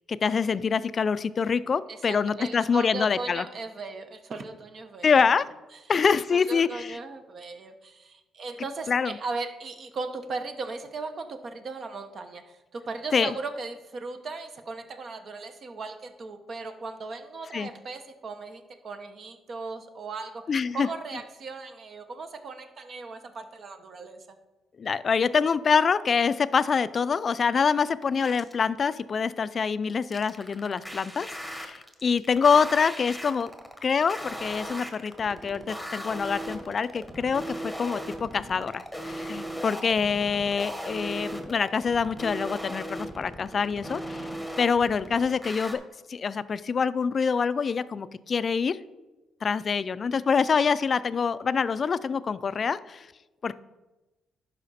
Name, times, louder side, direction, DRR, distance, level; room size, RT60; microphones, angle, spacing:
voice 1, 0.1-3.4 5.0-5.5 5.9-7.0 8.9-9.1 13.1-13.3 17.5-17.7 20.5-20.9 24.8-33.5 33.8-44.3 44.6-45.8 46.1-48.8 49.4-53.1 53.4-53.6, left 6 dB, 45° left, 15 dB, 0.4 m, -25 dB
voice 2, 1.9-5.1 5.7-5.8 6.3-20.4 20.7-24.3, right 3 dB, 50° right, 7 dB, 1.0 m, -37 dB
sound 1, 28.2-28.6 30.1-45.7, equal, ahead, 1.2 m, -37 dB
11.0 x 4.9 x 4.2 m, 1.1 s
cardioid pair, 90°, 0 cm